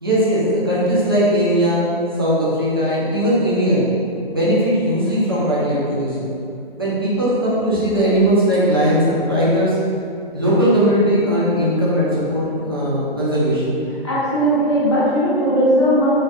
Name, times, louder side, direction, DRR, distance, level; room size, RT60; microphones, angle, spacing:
voice 1, 0.0-3.9 4.3-6.3 6.8-9.8 10.3-13.8, equal, 25° right, -9 dB, 0.3 m, -18 dB
voice 2, 14.0-16.1, equal, 25° left, -10 dB, 0.6 m, -17 dB
2.2 x 2.2 x 2.6 m, 2.4 s
figure-of-eight pair, 135°, 30 cm